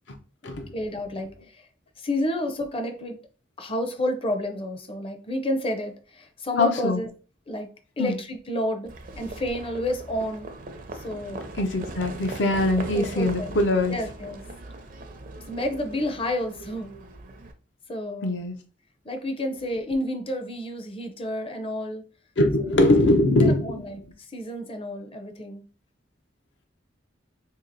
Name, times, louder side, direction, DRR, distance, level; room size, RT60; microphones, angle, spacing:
voice 1, 0.7-1.6 2.0-3.2 3.6-7.1 7.5-7.7 8.0-10.5 10.9-11.5 12.9-14.4 15.5-16.9 17.9-18.4 19.0-22.0 23.4-24.0 24.3-25.6, left 1 dB, 30° left, 6 dB, 0.6 m, -30 dB
voice 2, 6.6-7.0 8.0-8.1 11.6-14.0 18.2-18.6 22.4-23.8, left 1 dB, 70° left, 5 dB, 0.7 m, -22 dB
Livestock farm animals working animals, 8.9-17.5, right 2 dB, 50° right, 0.5 m, -39 dB
2.9 x 2.8 x 4.0 m, 0.38 s
head